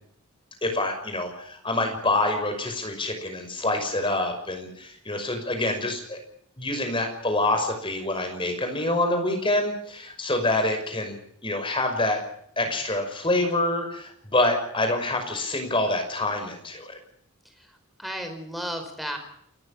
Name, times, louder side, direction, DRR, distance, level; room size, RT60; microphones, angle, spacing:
voice 1, 0.6-6.2 6.6-12.2 12.6-17.0, left 2 dB, 25° left, 6 dB, 5.7 m, -26 dB
voice 2, 17.5-19.2, equal, ahead, 5 dB, 4.8 m, -34 dB
29.5 x 14.5 x 7.4 m, 0.70 s
head